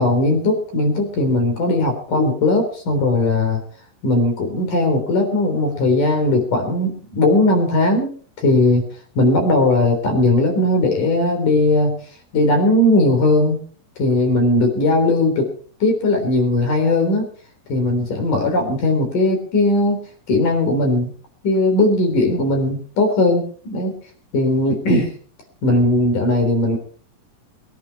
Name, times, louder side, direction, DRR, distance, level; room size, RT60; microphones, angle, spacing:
voice 1, 0.0-3.6 4.0-8.8 9.2-12.0 12.3-13.6 14.0-15.5 15.8-17.3 17.7-20.0 20.3-21.1 21.4-24.0 24.3-25.1 25.6-26.8, left 2 dB, 55° left, 3 dB, 5.0 m, -18 dB
22.5 x 11.0 x 4.6 m, 0.44 s
omnidirectional pair, 4.7 m